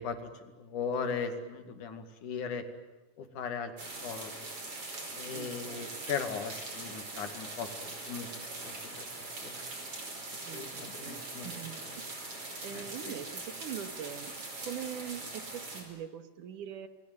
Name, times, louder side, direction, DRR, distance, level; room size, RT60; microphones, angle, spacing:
voice 1, 0.0-2.7 3.2-3.7 4.0-4.5 5.2-9.1 9.4-9.6 10.5-11.6 12.7-13.1, left 6 dB, 75° left, 7 dB, 3.7 m, -38 dB
sound 1, 3.8-15.8, right 2 dB, 45° right, 6.1 m, -42 dB
voice 2, 5.3-6.1 10.3-12.3 12.6-16.9, right 9 dB, 85° right, 9 dB, 3.1 m, -43 dB
29.5 x 20.5 x 9.4 m, 1.1 s
omnidirectional pair, 3.5 m